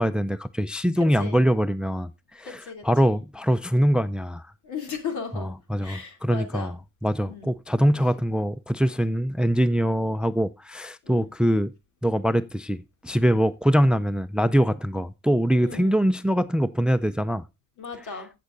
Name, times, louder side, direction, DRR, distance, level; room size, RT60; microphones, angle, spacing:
voice 1, 0.0-4.4 5.4-6.8 7.0-11.7 12.0-17.4, equal, 5° right, 0.4 m, -23 dB
voice 2, 2.4-3.2 4.6-5.5 5.8-6.7 7.3-7.5 11.0-11.3 15.6-16.1 17.8-18.3, left 5 dB, 75° left, 2.9 m, -36 dB
14.5 x 7.7 x 2.5 m
cardioid pair, 90°, 30 cm